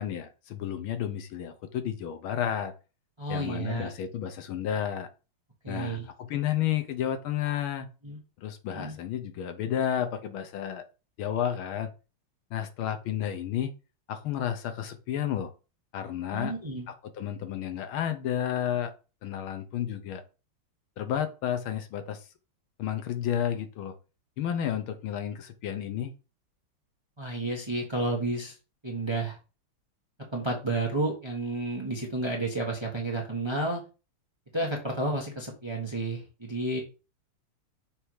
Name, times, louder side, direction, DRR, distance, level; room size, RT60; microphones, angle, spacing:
voice 1, 0.0-2.7 3.3-5.1 5.7-7.9 8.4-10.8 11.2-11.9 12.5-13.7 14.1-15.5 15.9-16.5 17.0-18.9 19.2-20.2 21.0-22.2 22.8-23.9 24.4-26.1, left 10 dB, 75° left, 8 dB, 1.6 m, -31 dB
voice 2, 3.2-3.9 5.6-6.1 8.0-8.2 8.7-8.9 16.3-16.9 27.2-28.5 28.8-29.4 30.3-33.8 34.5-36.8, right 2 dB, 15° right, 0 dB, 1.0 m, -31 dB
6.6 x 3.4 x 4.8 m, 0.32 s
omnidirectional pair, 2.3 m